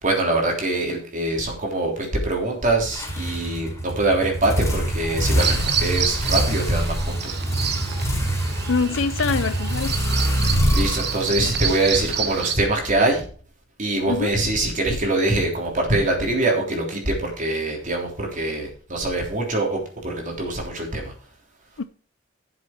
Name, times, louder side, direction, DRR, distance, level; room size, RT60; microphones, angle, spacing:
voice 1, 0.0-7.4 10.7-13.3 13.8-21.1, right 2 dB, 40° right, 3.4 m, -24 dB
sound 1, 2.9-12.7, right 1 dB, 15° left, 4.1 m, -25 dB
Bird vocalization bird call bird song, 5.4-12.6, right 8 dB, 55° right, 1.5 m, -29 dB
voice 2, 8.7-9.9 14.1-14.3 21.8-21.9, left 4 dB, 75° left, 0.6 m, -24 dB
11.5 x 7.5 x 4.5 m
head